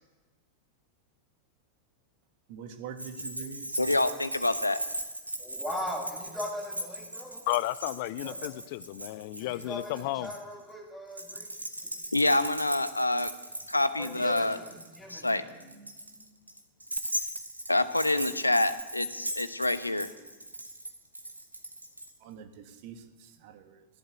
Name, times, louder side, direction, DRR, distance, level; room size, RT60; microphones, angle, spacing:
voice 1, 2.5-3.7 22.2-23.9, right 7 dB, 50° right, 7 dB, 1.6 m, -44 dB
Keys jangling, 3.0-10.4 11.1-22.1, right 1 dB, 85° right, 1.8 m, -38 dB
voice 2, 3.8-4.8 12.1-13.3 13.7-14.6 15.1-15.4 17.7-20.1, left 2 dB, 85° left, 13 dB, 0.9 m, -27 dB
voice 3, 5.4-7.4 8.2-8.5 9.4-11.5 11.8-11.9 14.0-15.8 16.1-16.2, left 1 dB, 5° right, -3 dB, 7.8 m, -40 dB
voice 4, 7.5-10.3, left 16 dB, 50° left, 18 dB, 0.6 m, -33 dB
14.5 x 12.0 x 8.1 m, 1.2 s
figure-of-eight pair, 90°, 0 cm